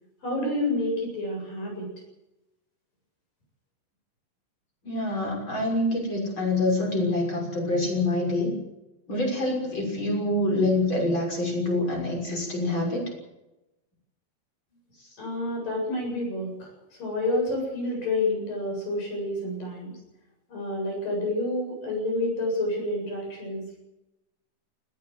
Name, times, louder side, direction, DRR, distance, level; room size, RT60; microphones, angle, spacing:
voice 1, 0.2-1.9 15.2-16.7 17.0-19.9 20.5-23.8, left 1 dB, 65° left, 1 dB, 9.6 m, -29 dB
voice 2, 4.8-8.5 9.1-13.0, left 2 dB, 30° left, 0 dB, 6.9 m, -26 dB
20.5 x 16.5 x 8.0 m, 0.95 s
omnidirectional pair, 4.2 m